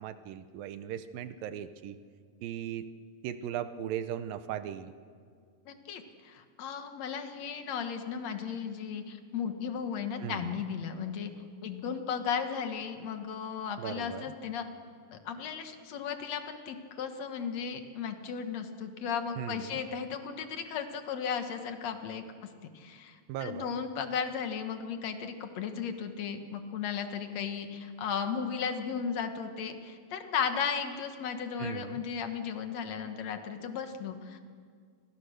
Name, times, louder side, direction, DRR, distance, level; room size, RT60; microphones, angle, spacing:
voice 1, 0.0-2.0 2.4-2.9 3.2-4.9 10.2-10.6 13.8-14.3 19.4-19.8 23.3-23.7 31.6-32.0, right 10 dB, 75° right, 11 dB, 2.3 m, -38 dB
voice 2, 5.7-11.3 11.6-14.7 15.1-22.2 22.7-34.4, left 7 dB, 55° left, 7 dB, 2.0 m, -35 dB
28.5 x 22.0 x 6.5 m, 2.1 s
omnidirectional pair, 4.6 m